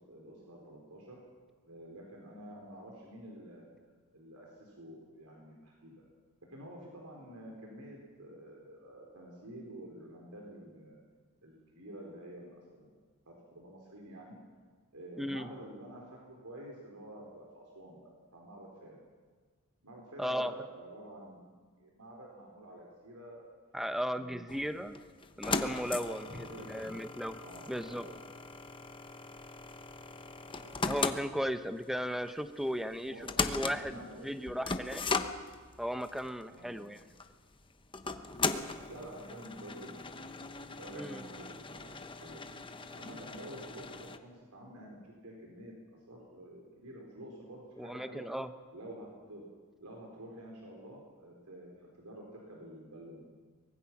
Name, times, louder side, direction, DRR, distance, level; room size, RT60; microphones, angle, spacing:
voice 1, 0.1-1.2 1.6-3.7 4.1-6.0 6.5-11.0 11.4-14.4 14.9-19.0 19.8-21.4 21.8-23.4 23.8-24.4 26.2-27.0 27.4-28.1 30.6-30.7 33.0-34.6 36.5-36.8 38.6-40.3 40.6-42.5 42.9-45.7 46.1-48.3 48.7-49.4 49.8-53.2, right 1 dB, 85° right, -1 dB, 4.1 m, -49 dB
voice 2, 15.2-15.5 20.2-20.5 23.7-24.9 25.4-27.4 27.7-28.1 30.8-35.0 35.8-37.0 40.9-41.2 47.8-48.5, equal, ahead, 10 dB, 0.8 m, -36 dB
sound 1, 24.5-44.2, left 4 dB, 25° left, 1.0 m, -39 dB
24.0 x 20.5 x 6.0 m, 1.5 s
head